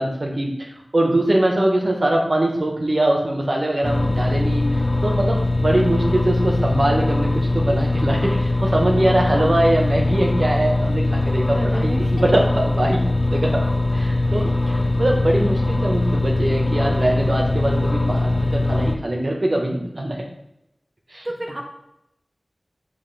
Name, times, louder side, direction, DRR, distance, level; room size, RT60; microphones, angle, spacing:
voice 1, 0.0-13.0 13.3-13.7 13.9-20.2 21.1-21.3, right 1 dB, 55° right, 0 dB, 1.4 m, -22 dB
sound 1, 3.8-19.0, left 2 dB, 40° left, 0.7 m, -21 dB
voice 2, 11.5-12.1 14.3-14.6 21.2-21.6, right 1 dB, 20° right, -1 dB, 1.2 m, -31 dB
7.7 x 3.2 x 5.8 m, 0.83 s
wide cardioid pair, 55°, 0 cm